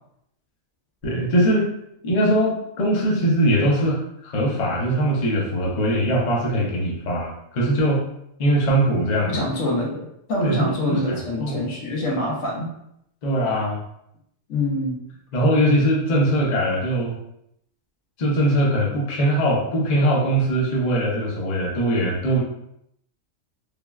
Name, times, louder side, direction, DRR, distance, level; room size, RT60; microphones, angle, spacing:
voice 1, 1.0-1.7 2.0-8.0 8.4-9.4 10.4-11.0 11.4-11.6 13.2-13.8 15.3-17.2 18.2-22.4, right 1 dB, 45° left, -3 dB, 0.6 m, -21 dB
voice 2, 9.3-12.7 14.5-15.0, left 1 dB, 70° left, -2 dB, 1.1 m, -25 dB
3.3 x 2.1 x 2.3 m, 0.76 s
omnidirectional pair, 1.5 m